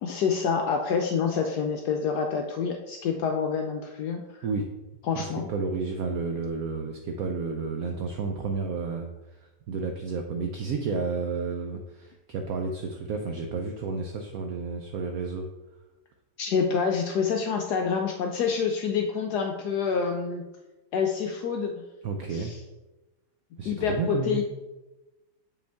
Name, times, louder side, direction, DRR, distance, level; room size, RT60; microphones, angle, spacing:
voice 1, 0.0-4.2 5.1-5.4 16.4-20.4 20.9-21.7 22.3-22.6 23.7-24.4, left 6 dB, 70° left, 3 dB, 1.1 m, -27 dB
voice 2, 5.1-9.1 9.7-15.5 22.0-22.5 23.6-24.4, right 4 dB, 65° right, 4 dB, 0.9 m, -31 dB
7.0 x 5.1 x 3.4 m, 1.1 s
omnidirectional pair, 2.0 m